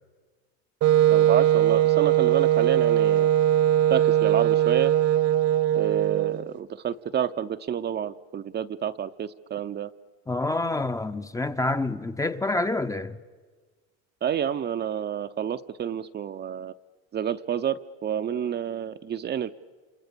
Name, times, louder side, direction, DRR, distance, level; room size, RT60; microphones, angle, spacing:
Wind instrument woodwind instrument, 0.8-6.5, right 12 dB, 50° right, 1.1 m, -20 dB
voice 1, 1.1-3.3 3.9-4.9 5.8-9.9 14.2-16.7 17.1-19.5, right 9 dB, 35° right, 0.7 m, -29 dB
voice 2, 10.3-13.2, left 2 dB, 10° left, 0.8 m, -27 dB
29.5 x 27.5 x 6.9 m
supercardioid pair, 115°, 31 cm